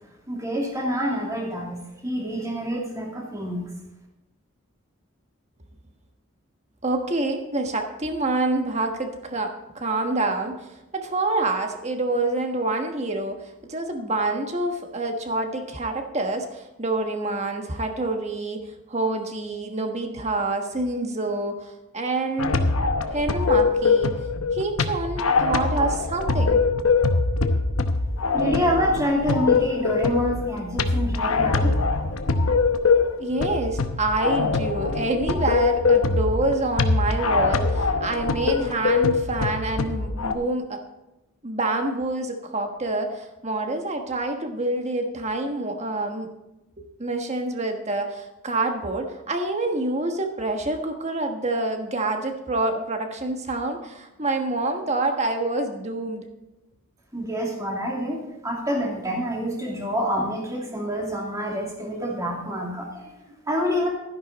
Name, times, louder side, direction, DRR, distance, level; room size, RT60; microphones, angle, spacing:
voice 1, 0.3-3.6 28.3-31.7 57.1-63.9, equal, 15° right, -2 dB, 2.6 m, -27 dB
voice 2, 6.8-22.6 23.1-24.1 24.5-26.6 33.2-40.8 41.4-46.3 46.8-56.3, right 2 dB, 30° right, 4 dB, 1.3 m, -27 dB
sound 1, 22.4-40.3, left 4 dB, 85° left, 0.9 m, -23 dB
12.5 x 11.0 x 4.1 m, 0.96 s
head